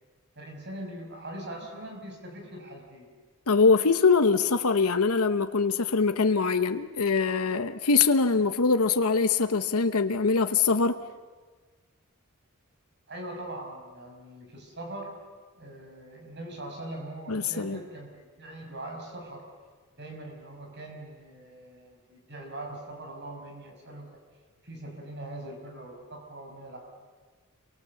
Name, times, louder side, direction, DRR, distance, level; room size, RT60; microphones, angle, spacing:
voice 1, 0.4-3.1 13.1-15.2 15.6-19.5 19.9-24.2 24.6-26.8, right 1 dB, 50° right, 5.9 m, -41 dB
voice 2, 3.5-11.0 17.3-17.8, left 4 dB, 85° left, 1.0 m, -23 dB
29.0 x 24.0 x 7.1 m
head